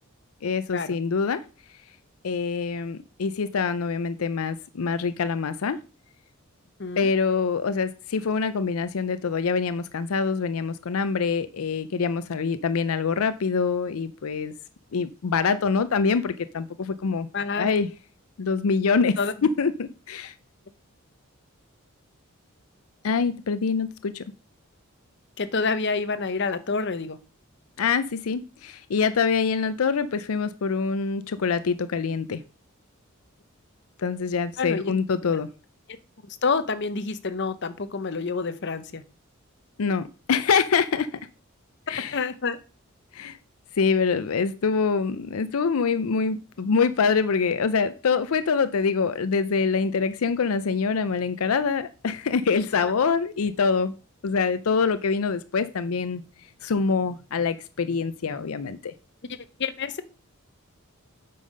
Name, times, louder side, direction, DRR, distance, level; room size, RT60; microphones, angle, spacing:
voice 1, 0.4-1.4 2.2-5.8 7.0-14.5 14.9-17.3 17.6-17.9 18.4-20.3 23.0-24.2 27.8-32.4 34.0-35.5 39.8-41.1 41.9-42.2 43.1-43.4 43.8-53.9 54.2-56.2 56.6-58.9, left 5 dB, 85° left, 0.5 m, -25 dB
voice 2, 17.3-17.7 19.2-19.3 25.4-27.2 34.6-34.9 36.4-39.0 42.1-42.6 52.8-52.9 59.6-59.9, left 4 dB, 55° left, 0.8 m, -28 dB
8.5 x 5.5 x 5.4 m
head